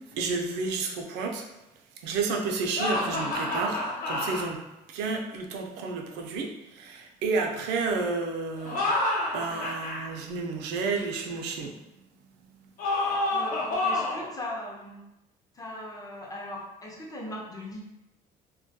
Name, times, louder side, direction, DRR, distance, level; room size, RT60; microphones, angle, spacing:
voice 1, 0.1-1.4 2.0-4.6 4.9-8.8 9.3-11.7, right 4 dB, 85° right, 2 dB, 0.4 m, -31 dB
sound 1, 2.8-4.5 8.6-10.0 12.8-14.3, left 2 dB, 55° left, 0.7 m, -28 dB
voice 2, 13.0-15.0 15.5-17.8, left 1 dB, 20° left, -1 dB, 0.6 m, -39 dB
2.2 x 2.2 x 2.6 m, 0.93 s
cardioid pair, 110°, 17 cm